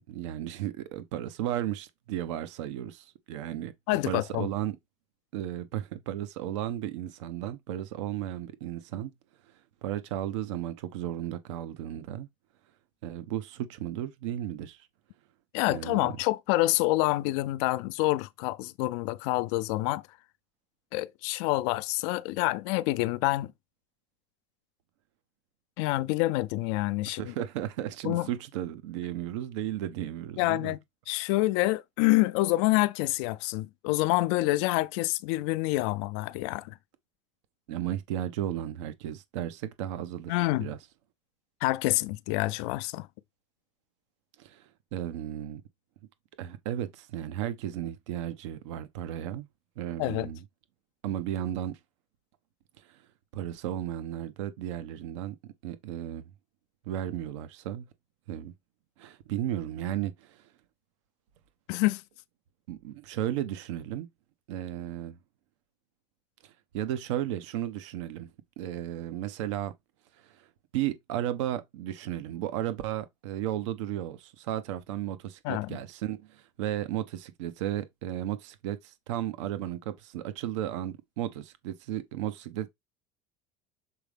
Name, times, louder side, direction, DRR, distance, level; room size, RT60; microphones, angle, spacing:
voice 1, 0.1-3.7 4.0-4.8 5.3-9.1 9.8-12.3 13.0-14.8 15.7-16.2 27.1-30.7 37.7-40.8 44.4-45.6 46.4-49.5 49.8-50.4 51.0-51.8 52.9-53.0 53.3-55.4 55.6-56.3 56.9-57.9 58.3-58.5 59.0-60.4 62.7-64.1 64.5-65.2 66.4-68.3 68.6-69.7 70.2-70.5 70.7-82.7, right 12 dB, 80° right, 1.0 m, -34 dB
voice 2, 3.9-4.5 15.5-20.0 20.9-23.5 25.8-27.3 28.0-28.3 30.4-30.8 31.1-36.8 40.3-40.7 41.6-43.1 50.0-50.3 61.7-62.0 75.4-75.8, left 19 dB, 70° left, 0.5 m, -27 dB
6.8 x 4.0 x 3.5 m
supercardioid pair, 100°, 15 cm